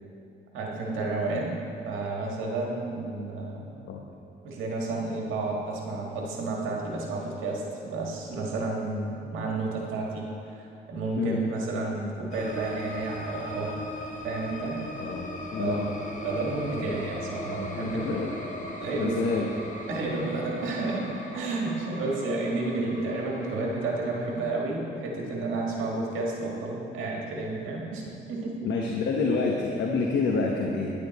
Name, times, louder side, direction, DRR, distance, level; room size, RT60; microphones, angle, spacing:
voice 1, 0.5-1.5 1.8-3.8 4.4-13.8 14.2-14.8 15.6-15.8 16.2-18.1 18.8-19.2 19.9-21.1 21.3-28.0 28.3-28.6, right 3 dB, 90° right, -1 dB, 1.8 m, -31 dB
sound 1, 12.3-24.4, left 1 dB, 40° left, 1.3 m, -39 dB
voice 2, 15.5-15.8 17.7-18.3 18.9-19.5 28.6-30.9, left 4 dB, 65° left, -1 dB, 1.0 m, -27 dB
10.0 x 8.9 x 4.1 m, 2.6 s
cardioid pair, 90°, 20 cm